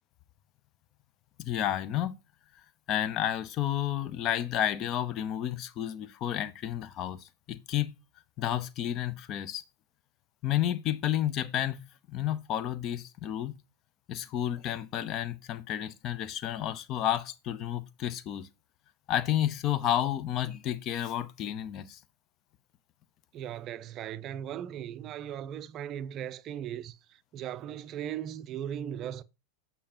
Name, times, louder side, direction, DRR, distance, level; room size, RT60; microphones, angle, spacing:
voice 1, 1.4-2.1 2.9-7.9 8.4-9.6 10.4-13.6 14.1-18.5 19.1-22.0, left 11 dB, 35° left, 0.6 m, -31 dB
voice 2, 23.3-29.2, right 10 dB, 35° right, 0.4 m, -38 dB
8.4 x 5.5 x 2.9 m
figure-of-eight pair, 90°, 0 cm